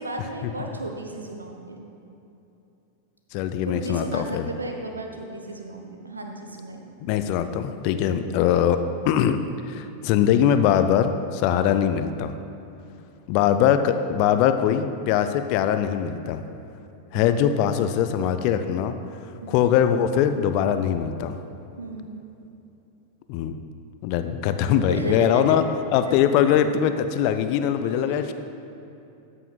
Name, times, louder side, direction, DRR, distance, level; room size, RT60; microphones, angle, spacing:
voice 1, 0.0-1.8 3.6-7.0 17.1-17.5 19.4-19.6 21.8-22.1 24.9-25.7 26.1-26.2 27.8-28.3, right 2 dB, 80° right, 3 dB, 1.0 m, -34 dB
voice 2, 3.3-4.5 7.0-9.4 9.7-12.3 13.3-16.4 17.1-18.9 19.5-21.4 23.3-23.5 24.0-25.6 25.9-28.3, left 9 dB, 45° left, 9 dB, 0.5 m, -22 dB
13.0 x 5.8 x 4.0 m, 2.8 s
figure-of-eight pair, 90°, 0 cm